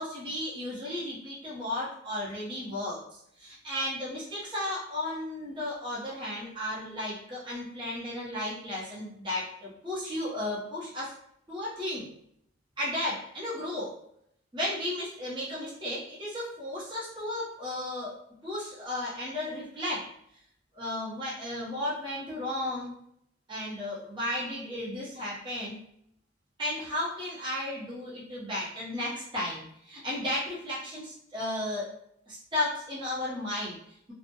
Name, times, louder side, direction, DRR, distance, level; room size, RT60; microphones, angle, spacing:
voice 1, 0.0-11.1 11.5-12.1 12.8-14.0 14.5-20.1 20.7-22.9 23.5-25.8 26.6-31.9 32.3-34.1, left 1 dB, 25° right, -8 dB, 0.6 m, -34 dB
2.1 x 2.0 x 2.8 m, 0.73 s
head